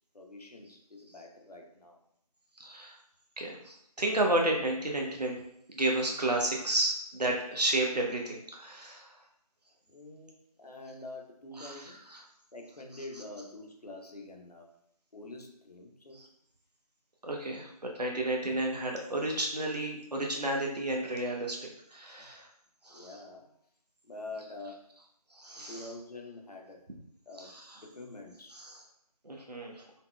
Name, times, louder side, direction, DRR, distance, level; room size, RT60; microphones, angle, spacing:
voice 1, 0.1-2.0 9.9-12.0 12.5-14.7 15.1-16.2 22.2-22.3 22.9-23.5 24.0-24.9 25.5-26.8 27.3-28.6 29.8-29.9, left 2 dB, 75° left, 1 dB, 0.8 m, -46 dB
voice 2, 2.6-3.0 3.4-5.4 5.7-9.2 11.6-12.2 16.1-16.3 17.2-21.6 21.9-22.5 22.8-23.2 25.3-25.9 27.4-27.8 28.5-28.8 29.2-29.8, right 1 dB, 90° right, 0 dB, 0.8 m, -32 dB
5.6 x 2.1 x 2.2 m, 0.74 s
figure-of-eight pair, 165°, 20 cm